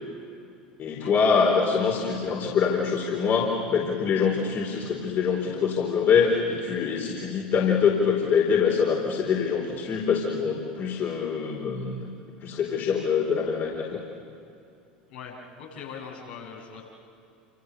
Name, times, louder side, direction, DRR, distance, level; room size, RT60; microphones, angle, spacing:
voice 1, 0.8-12.1 12.4-14.0, left 6 dB, 45° left, -2 dB, 4.3 m, -24 dB
voice 2, 15.1-16.8, left 6 dB, 75° left, -3 dB, 7.8 m, -41 dB
28.5 x 28.0 x 6.8 m, 2.6 s
figure-of-eight pair, 75°, 5 cm